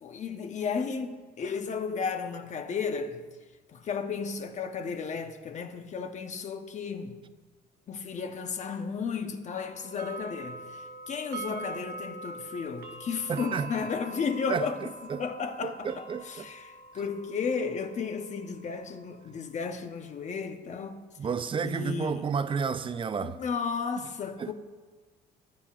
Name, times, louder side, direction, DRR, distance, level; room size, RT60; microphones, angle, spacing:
voice 1, 0.0-3.2 3.7-7.2 7.9-14.8 15.2-21.0 21.6-22.2 23.2-24.5, left 5 dB, 45° left, 1.0 m, -34 dB
sound 1, 9.5-20.0, right 3 dB, 70° right, 0.9 m, -44 dB
voice 2, 13.3-13.7 14.5-15.2 15.6-16.5 21.2-23.4 24.4-24.5, right 6 dB, 30° right, 0.5 m, -31 dB
14.5 x 10.5 x 2.5 m
cardioid pair, 110°, 17 cm